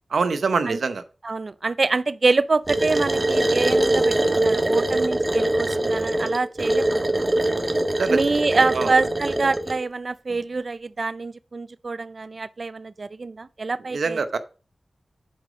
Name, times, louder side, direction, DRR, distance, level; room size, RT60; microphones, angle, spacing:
voice 1, 0.1-1.0 8.0-8.2 8.7-8.9 13.9-14.4, right 4 dB, 85° right, 0.7 m, -24 dB
voice 2, 1.2-7.3 8.1-14.2, right 3 dB, 60° right, 0.4 m, -25 dB
sound 1, 2.7-9.8, right 1 dB, 30° right, 1.4 m, -22 dB
7.6 x 5.0 x 5.0 m
cardioid pair, 50°, 0 cm